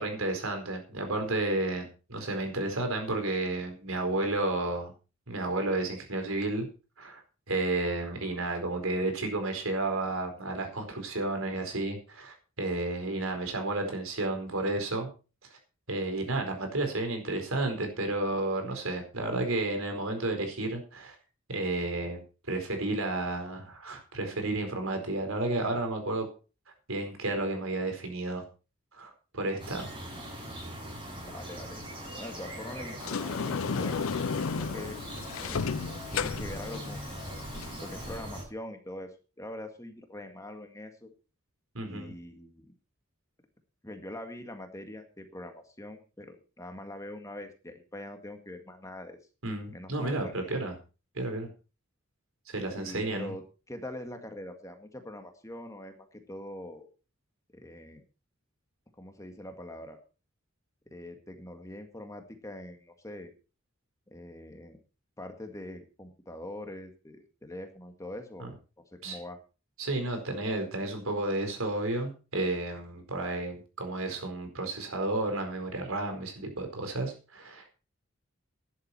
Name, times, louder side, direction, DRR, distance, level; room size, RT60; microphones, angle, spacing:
voice 1, 0.0-4.9 5.3-6.7 7.0-7.2 7.5-15.1 15.5-15.6 15.9-21.2 21.5-26.3 26.9-28.4 28.9-29.9 41.7-42.1 49.4-50.7 51.1-51.5 52.5-53.3 68.4-68.5 69.0-69.2 69.8-77.6, right 2 dB, 85° right, 5 dB, 4.5 m, -32 dB
sound 1, 29.6-38.4, equal, 25° right, 8.0 m, -41 dB
voice 2, 31.0-31.8 32.2-34.1 34.4-35.0 35.4-35.6 36.1-37.1 37.8-41.1 41.9-42.7 43.8-49.2 49.7-50.3 52.8-56.9 57.5-58.0 59.0-60.0 60.9-63.3 64.1-64.8 65.2-68.5 68.9-69.4, left 1 dB, 15° left, 6 dB, 1.9 m, -43 dB
Sliding door, 33.0-38.2, left 5 dB, 80° left, 0.6 m, -33 dB
13.0 x 11.0 x 4.4 m, 0.34 s
head